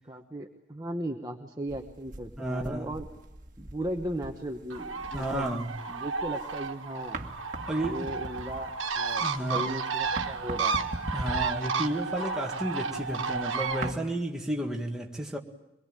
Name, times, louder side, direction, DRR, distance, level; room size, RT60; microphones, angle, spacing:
voice 1, 0.0-3.1 3.6-5.5 5.9-7.2 7.8-10.8, right 1 dB, 20° right, 1.1 m, -37 dB
sound 1, 1.7-6.7 7.0-14.0, right 1 dB, 40° right, 1.7 m, -41 dB
voice 2, 2.4-2.9 5.1-5.7 7.7-8.1 9.2-9.6 11.1-15.4, right 1 dB, 5° right, 1.9 m, -32 dB
Bird, 4.7-13.9, right 4 dB, 75° right, 1.6 m, -32 dB
24.0 x 22.0 x 9.1 m
head